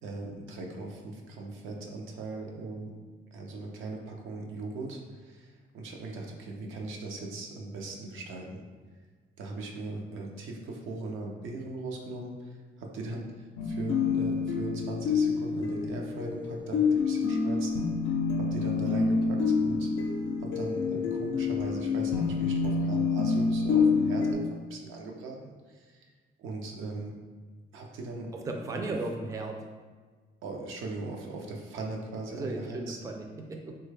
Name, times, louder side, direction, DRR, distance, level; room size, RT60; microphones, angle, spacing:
voice 1, 0.0-2.9 3.3-8.6 9.4-13.3 13.6-17.8 18.4-19.9 20.4-24.4 24.7-26.0 26.4-27.1 27.7-28.8 30.4-33.0, right 2 dB, 85° right, 0 dB, 0.5 m, -39 dB
sound 1, 13.6-24.3, left 5 dB, 80° left, 0.4 m, -27 dB
voice 2, 28.3-29.6 32.3-33.8, right 2 dB, 15° right, 2 dB, 0.3 m, -36 dB
3.3 x 2.2 x 3.2 m, 1.5 s
cardioid pair, 90°, 20 cm